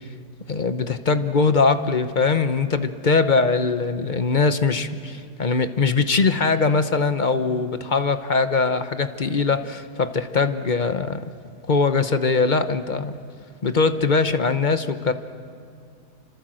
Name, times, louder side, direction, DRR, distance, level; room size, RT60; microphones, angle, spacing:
voice 1, 0.5-11.2 11.7-13.1 13.6-15.1, left 4 dB, 35° left, 10 dB, 0.9 m, -21 dB
28.0 x 26.0 x 7.7 m, 2.5 s
omnidirectional pair, 1.7 m